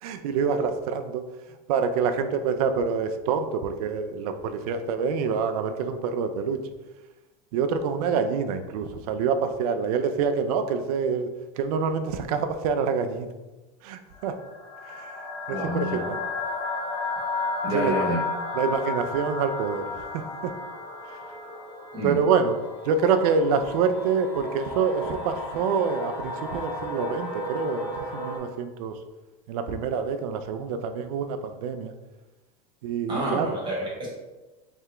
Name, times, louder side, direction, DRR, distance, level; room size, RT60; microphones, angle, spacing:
voice 1, 0.0-1.2 1.7-6.6 7.5-11.3 11.6-13.3 13.8-14.3 14.8-16.2 17.7-17.9 18.5-20.5 21.1-21.2 22.0-22.6 22.8-29.0 29.5-31.9 32.8-33.6, right 6 dB, 70° right, 8 dB, 0.5 m, -26 dB
sound 1, 14.1-28.4, left 3 dB, 25° left, 1.0 m, -33 dB
voice 2, 15.5-16.0 17.6-18.2 21.9-22.2 33.1-34.2, equal, 25° right, -4 dB, 1.3 m, -29 dB
3.5 x 2.9 x 3.2 m, 1.1 s
supercardioid pair, 135°, 20 cm